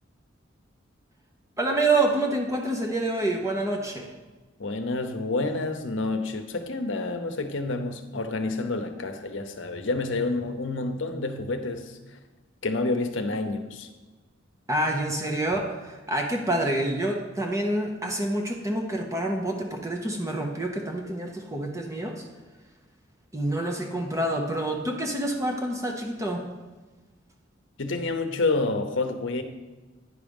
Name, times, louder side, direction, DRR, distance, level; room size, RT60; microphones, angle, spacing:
voice 1, 1.6-4.1 14.7-22.2 23.3-26.4, right 1 dB, 15° right, 2 dB, 0.8 m, -27 dB
voice 2, 4.6-12.0 12.6-13.9 27.8-29.4, left 3 dB, 65° left, 7 dB, 0.8 m, -28 dB
9.8 x 4.9 x 5.3 m, 1.2 s
head